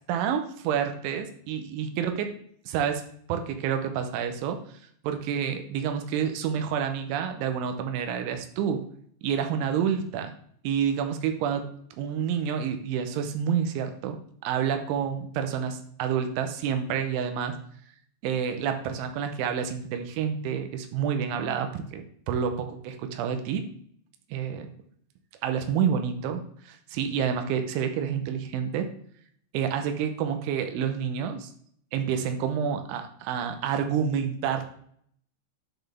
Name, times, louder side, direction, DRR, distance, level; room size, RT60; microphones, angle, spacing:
voice 1, 0.1-2.3 2.7-3.0 3.3-4.6 5.0-8.8 9.2-10.3 10.6-11.7 12.0-14.2 14.4-17.6 18.2-23.7 24.3-24.7 25.4-28.9 29.5-31.5 31.9-34.7, right 8 dB, 85° right, 7 dB, 3.1 m, -28 dB
10.5 x 4.0 x 3.4 m, 0.62 s
omnidirectional pair, 5.4 m